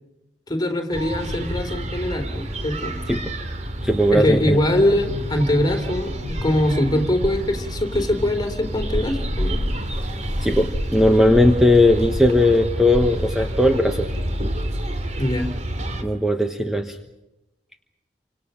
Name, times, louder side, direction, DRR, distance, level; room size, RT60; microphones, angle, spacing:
voice 1, 0.5-3.0 4.1-9.7 15.2-15.5, left 1 dB, 20° left, 4 dB, 3.6 m, -22 dB
sound 1, 0.9-16.0, equal, 40° right, 2.7 m, -28 dB
voice 2, 3.8-4.6 10.4-14.1 16.0-17.0, left 1 dB, 5° right, 4 dB, 1.2 m, -18 dB
29.5 x 26.0 x 5.8 m, 0.99 s
head